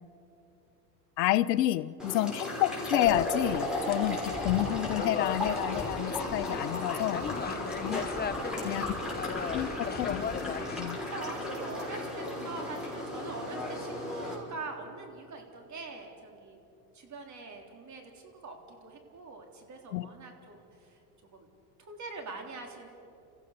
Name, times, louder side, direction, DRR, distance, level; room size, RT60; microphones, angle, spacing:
voice 1, 1.2-7.2 7.8-8.0 8.6-8.9 9.5-10.3 10.8-11.0 19.9-20.1, left 15 dB, 85° left, 17 dB, 0.8 m, -29 dB
sound 1, 2.0-14.4, left 1 dB, ahead, 6.3 m, -35 dB
sound 2, 3.0-10.9, left 6 dB, 20° left, 0.8 m, -38 dB
voice 2, 8.5-9.1 11.1-16.6 16.9-21.0 21.3-21.5 21.8-22.9, right 3 dB, 35° right, 3 dB, 3.7 m, -44 dB
29.5 x 15.0 x 6.7 m, 2.8 s
hypercardioid pair, 90°, 47 cm